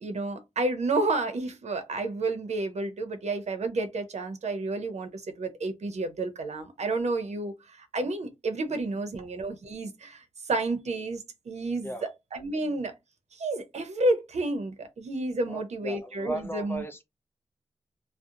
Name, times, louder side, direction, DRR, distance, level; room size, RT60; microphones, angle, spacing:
voice 1, 0.0-12.9 13.3-16.8, right 2 dB, 70° right, 0.7 m, -30 dB
voice 2, 15.5-17.0, right 1 dB, 20° left, 0.6 m, -36 dB
2.7 x 2.0 x 2.4 m
cardioid pair, 60°, 12 cm